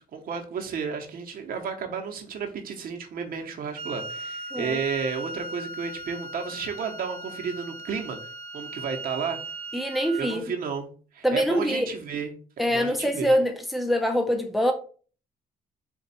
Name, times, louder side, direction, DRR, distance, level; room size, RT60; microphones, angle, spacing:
voice 1, 0.0-9.4 10.2-10.9 11.1-13.3, right 6 dB, 60° right, 0.9 m, -32 dB
Wind instrument woodwind instrument, 3.7-10.4, right 2 dB, 40° right, 0.5 m, -38 dB
voice 2, 9.7-10.4 11.2-11.9 12.6-14.7, equal, ahead, 0.6 m, -24 dB
4.4 x 2.4 x 4.1 m
cardioid pair, 105°, 17 cm